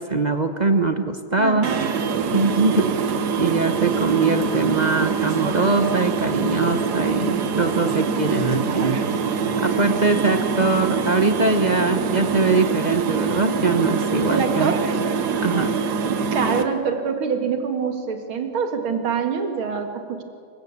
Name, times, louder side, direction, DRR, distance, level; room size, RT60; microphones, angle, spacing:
voice 1, 0.0-1.7 2.3-3.0 3.4-9.0 9.6-14.7 15.4-15.7, right 3 dB, 35° right, 7 dB, 0.7 m, -22 dB
voice 2, 1.4-2.3 10.2-10.4 14.3-14.9 16.3-20.2, right 6 dB, 90° right, 5 dB, 2.7 m, -25 dB
sound 1, 1.6-16.6, right 5 dB, 60° right, 1.6 m, -24 dB
26.0 x 15.5 x 8.3 m, 2.3 s
omnidirectional pair, 2.2 m